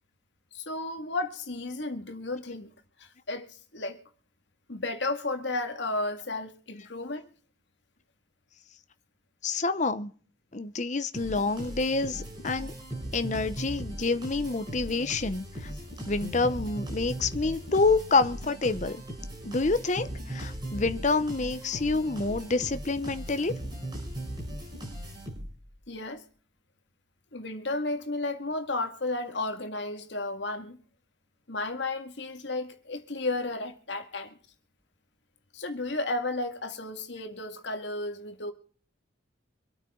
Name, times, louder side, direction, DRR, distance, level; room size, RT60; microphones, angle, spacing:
voice 1, 0.5-2.7 3.0-4.0 4.7-7.3 25.9-26.2 27.3-30.8 31.5-34.4 35.5-38.5, left 2 dB, 65° left, 2.1 m, -33 dB
voice 2, 9.4-10.1 10.5-12.7 13.1-15.7 16.1-19.0 19.5-23.5, left 3 dB, 35° left, 0.8 m, -27 dB
sound 1, 11.1-25.7, right 1 dB, 25° right, 7.3 m, -38 dB
26.0 x 9.0 x 3.8 m
head